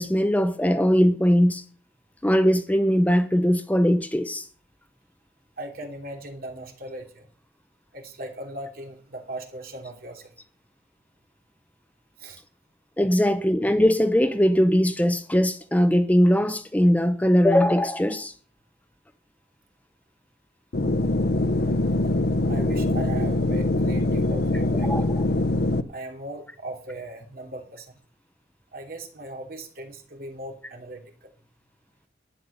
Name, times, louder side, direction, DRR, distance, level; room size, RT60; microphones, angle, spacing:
voice 1, 0.0-1.6 2.2-4.4 13.0-18.3 24.8-25.0, equal, 10° left, 0.7 m, -20 dB
voice 2, 5.6-7.3 7.9-10.3 12.2-12.4 22.5-25.1 25.9-27.9 28.7-31.3, right 1 dB, 55° right, 2.9 m, -38 dB
sound 1, 20.7-25.8, left 2 dB, 60° left, 0.8 m, -23 dB
12.0 x 9.5 x 5.4 m
head